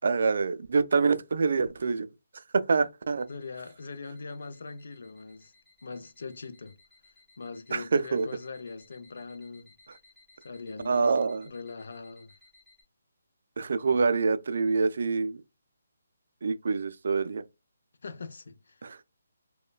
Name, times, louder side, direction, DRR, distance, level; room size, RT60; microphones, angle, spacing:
voice 1, 0.0-2.1 2.7-3.3 7.7-8.3 10.8-11.5 13.6-15.4 16.4-17.4 18.8-19.0, right 4 dB, 60° right, 0.3 m, -26 dB
sound 1, 3.2-12.8, left 3 dB, ahead, 0.8 m, -61 dB
voice 2, 3.3-5.5 5.8-6.8 7.4-9.7 10.4-11.1 11.5-12.3 13.9-14.1 18.0-18.9, left 4 dB, 65° left, 0.4 m, -41 dB
3.1 x 2.1 x 2.2 m
hypercardioid pair, 160°, 0 cm